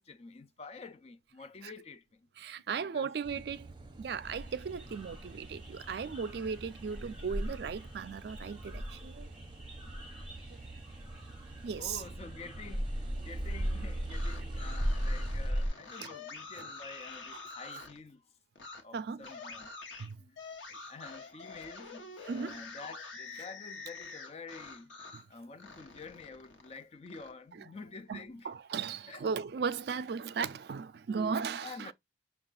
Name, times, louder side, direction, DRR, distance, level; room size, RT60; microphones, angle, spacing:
voice 1, 0.0-2.3 2.7-3.4 11.5-18.2 18.8-19.7 20.2-20.4 20.9-24.9 25.3-28.5 29.1-29.3 31.5-31.9, left 4 dB, 35° left, 0.4 m, -49 dB
voice 2, 2.4-3.7 4.0-9.3 11.6-12.0 16.0-16.1 16.6-16.7 18.9-19.2 20.0-20.2 22.2-22.6 25.1-25.2 28.1-31.9, right 6 dB, 55° right, 0.3 m, -37 dB
Car passing by / Idling / Accelerating revving vroom, 3.2-15.5, right 3 dB, 25° right, 0.6 m, -47 dB
sound 1, 4.2-15.7, equal, 5° right, 1.0 m, -38 dB
sound 2, 13.9-18.0 18.5-18.8 19.2-25.3 25.6-27.3, left 3 dB, 80° left, 1.0 m, -47 dB
5.5 x 2.4 x 3.7 m
head